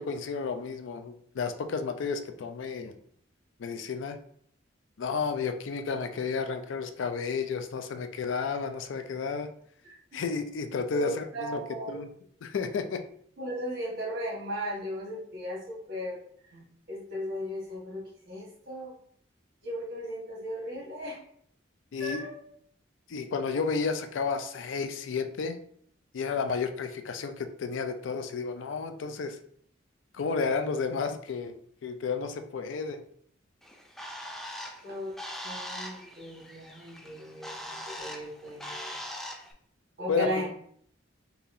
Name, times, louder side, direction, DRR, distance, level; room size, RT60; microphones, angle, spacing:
voice 1, 0.0-3.0 3.6-4.2 5.0-9.5 10.1-11.6 11.9-12.1 12.4-13.0 21.9-22.2 23.1-25.6 26.1-29.4 30.1-31.5 31.8-33.0 40.1-40.4, left 5 dB, 85° left, 8 dB, 0.4 m, -32 dB
voice 2, 9.8-10.2 10.9-12.0 13.4-18.9 19.6-21.2 22.0-22.4 34.8-35.1 35.4-38.9 40.0-40.5, equal, 55° right, -4 dB, 1.4 m, -37 dB
Bird, 33.6-39.5, equal, ahead, 0.3 m, -41 dB
4.0 x 2.8 x 2.6 m, 0.64 s
head